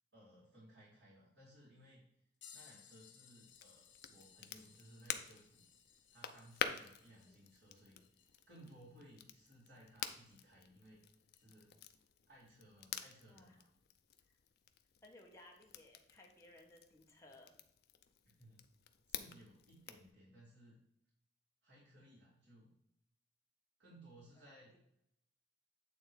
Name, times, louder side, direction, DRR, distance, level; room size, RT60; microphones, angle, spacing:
voice 1, 0.1-2.0 2.5-5.6 6.1-8.0 8.5-11.0 11.4-11.8 12.3-13.7 18.2-18.6 19.1-20.8 21.6-22.8 23.8-24.8, right 1 dB, 75° right, -9 dB, 2.8 m, -61 dB
sound 1, 2.4-10.6 11.3-11.5 13.7-13.8 14.9-15.0 16.1-16.2, left 8 dB, 80° left, 1.6 m, -64 dB
Crackle, 3.5-20.1, left 8 dB, 55° left, 0.5 m, -49 dB
voice 2, 13.3-13.6 15.0-17.5 24.4-24.8, left 1 dB, 15° left, -1 dB, 1.2 m, -61 dB
8.5 x 3.7 x 4.8 m, 0.77 s
head